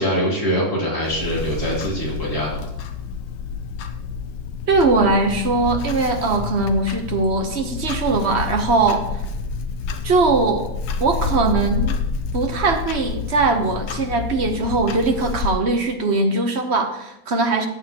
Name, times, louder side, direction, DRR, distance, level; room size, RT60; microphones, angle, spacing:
voice 1, 0.0-2.6, equal, 60° left, -5 dB, 3.9 m, -23 dB
Clock, 1.0-15.5, left 5 dB, 75° left, 1.5 m, -29 dB
voice 2, 4.7-9.2 10.0-10.7 11.0-12.0 12.3-17.7, right 3 dB, 45° right, 5 dB, 1.0 m, -20 dB
14.5 x 8.9 x 2.9 m, 0.87 s
omnidirectional pair, 1.9 m